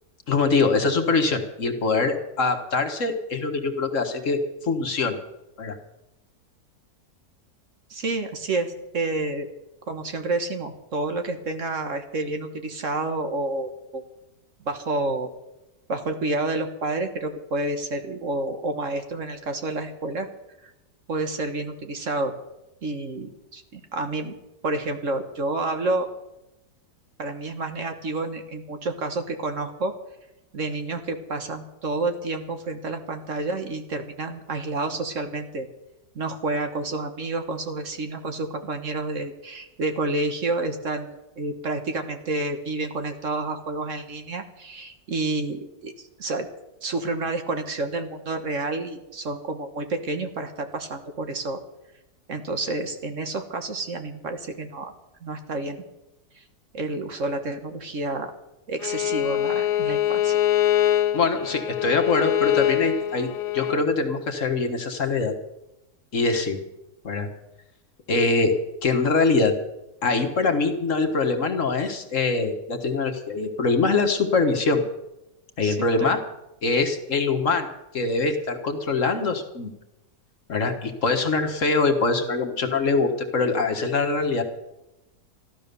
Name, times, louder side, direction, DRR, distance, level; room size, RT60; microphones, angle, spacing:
voice 1, 0.3-5.2 5.6-5.8 61.1-63.3 63.5-65.3 66.1-66.6 67.0-67.3 68.1-68.5 68.8-69.5 70.0-74.8 75.6-76.2 76.6-77.7 77.9-79.7 80.5-84.4, left 3 dB, 55° left, 6 dB, 1.7 m, -23 dB
voice 2, 7.9-9.5 9.9-14.0 14.7-15.3 15.9-20.3 20.6-20.7 21.1-22.3 22.8-24.4 24.6-26.1 27.2-29.9 30.5-35.7 36.2-41.1 41.4-46.5 46.8-51.6 52.3-54.9 55.2-55.9 56.4-56.5 56.7-58.3 58.7-60.4 75.6-76.1, right 2 dB, 55° right, 7 dB, 1.6 m, -29 dB
Bowed string instrument, 58.8-63.8, left 12 dB, 90° left, 1.5 m, -24 dB
14.0 x 12.5 x 6.8 m, 0.93 s
omnidirectional pair, 1.7 m